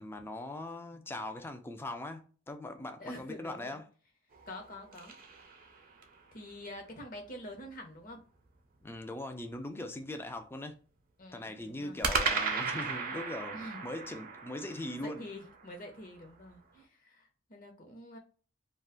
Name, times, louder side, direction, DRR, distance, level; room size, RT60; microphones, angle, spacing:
voice 1, 0.0-3.9 8.8-10.8 11.3-13.6 13.8-15.2, left 1 dB, 10° left, 0.3 m, -40 dB
voice 2, 3.0-3.8 4.5-5.1 6.3-8.2 11.2-12.0 13.5-13.8 14.5-18.2, left 1 dB, 40° left, 0.8 m, -46 dB
sound 1, 4.3-6.2 12.0-16.3, right 5 dB, 45° right, 0.5 m, -36 dB
2.4 x 2.3 x 3.6 m
head